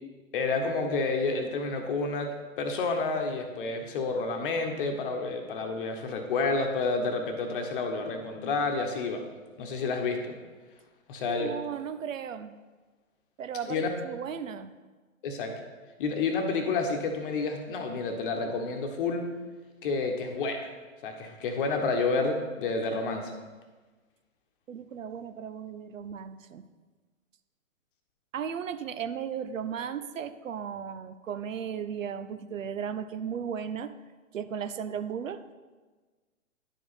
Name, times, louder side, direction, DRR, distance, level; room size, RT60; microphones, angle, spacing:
voice 1, 0.3-9.2 9.6-10.3 11.1-11.5 13.6-13.9 15.2-15.5 16.0-19.2 19.8-20.7 21.0-23.3, left 3 dB, 40° left, 4 dB, 1.1 m, -29 dB
voice 2, 11.3-12.6 13.4-14.7 24.7-26.7 28.3-33.9 34.3-35.4, right 8 dB, 65° right, 11 dB, 0.6 m, -35 dB
10.5 x 4.9 x 4.1 m, 1.3 s
figure-of-eight pair, 125°, 42 cm